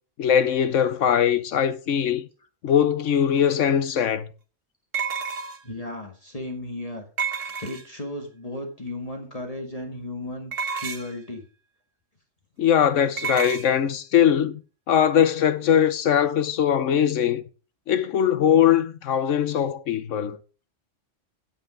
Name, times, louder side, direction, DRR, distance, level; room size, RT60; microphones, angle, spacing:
voice 1, 0.2-2.3 2.6-4.3 12.6-14.6 14.9-17.4 17.9-20.4, left 9 dB, 75° left, 1.2 m, -21 dB
sound 1, 3.4-3.5 4.9-5.8 7.2-8.1 10.5-11.2 13.2-13.7, right 6 dB, 90° right, 1.6 m, -30 dB
voice 2, 5.6-7.1 7.3-11.4, left 1 dB, 30° left, 1.9 m, -35 dB
9.3 x 8.1 x 4.9 m
omnidirectional pair, 1.3 m